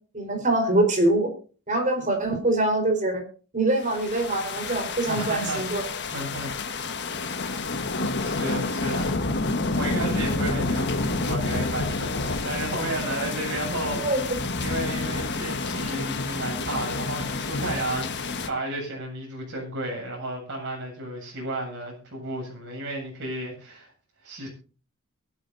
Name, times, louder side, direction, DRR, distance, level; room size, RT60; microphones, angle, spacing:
voice 1, 0.1-1.3 1.7-3.2 3.5-5.8 8.0-8.1 14.0-14.2, right 2 dB, 35° right, 4 dB, 4.6 m, -24 dB
sound 1, 3.8-18.5, left 3 dB, 55° left, 1.5 m, -29 dB
voice 2, 5.1-7.0 8.2-9.2 9.5-14.0 14.6-23.9 24.2-24.5, right 1 dB, 55° right, -1 dB, 7.9 m, -33 dB
23.0 x 11.5 x 2.8 m, 0.37 s
head